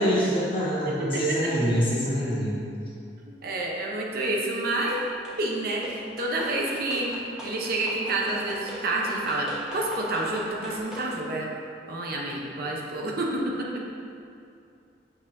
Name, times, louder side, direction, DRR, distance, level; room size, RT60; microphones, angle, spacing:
voice 1, 0.0-2.6, equal, 30° left, -7 dB, 1.4 m, -25 dB
voice 2, 0.9-1.5 3.4-5.1 5.4-5.9 6.2-7.1 7.4-9.5 9.7-11.5 11.9-13.7, right 2 dB, 60° right, -2 dB, 0.7 m, -28 dB
sound 1, 4.9-5.4 5.8-11.1, equal, 5° right, 1.1 m, -40 dB
6.4 x 6.1 x 2.6 m, 2.5 s
head